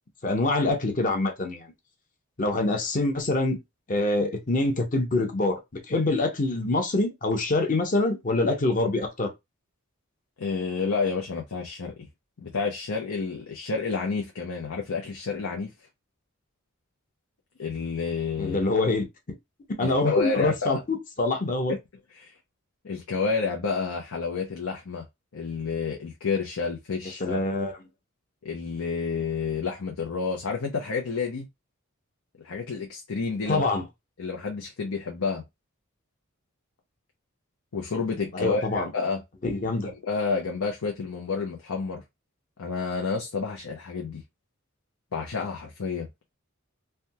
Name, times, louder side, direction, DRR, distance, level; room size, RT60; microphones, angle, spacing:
voice 1, 0.2-1.7 2.4-3.6 3.9-5.6 5.9-9.3 18.4-19.0 19.8-21.8 27.2-27.7 33.5-33.8 38.3-38.9 39.4-39.9, left 2 dB, 40° left, 0.8 m, -25 dB
voice 2, 10.4-12.1 12.4-15.7 17.6-18.6 19.8-20.8 22.1-22.3 22.8-25.0 25.3-27.4 28.4-31.5 32.4-33.7 34.2-35.4 37.7-39.2 39.8-42.0 42.6-44.2 45.1-46.1, left 4 dB, 80° left, 0.7 m, -30 dB
3.4 x 2.2 x 2.7 m
head